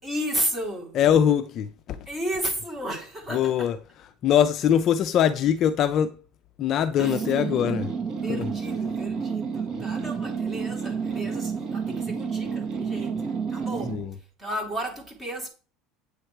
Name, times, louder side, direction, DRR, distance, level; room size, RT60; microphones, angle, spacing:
voice 1, 0.0-1.0 2.1-3.7 7.0-7.3 8.2-14.0 14.4-15.5, right 1 dB, 10° right, 3.0 m, -33 dB
voice 2, 0.9-2.1 3.3-6.2 6.6-7.9 8.3-8.5 13.9-14.1, left 9 dB, 35° left, 0.6 m, -23 dB
sound 1, 7.0-14.0, right 6 dB, 35° right, 1.9 m, -30 dB
8.8 x 7.8 x 4.5 m
cardioid pair, 165°, 0 cm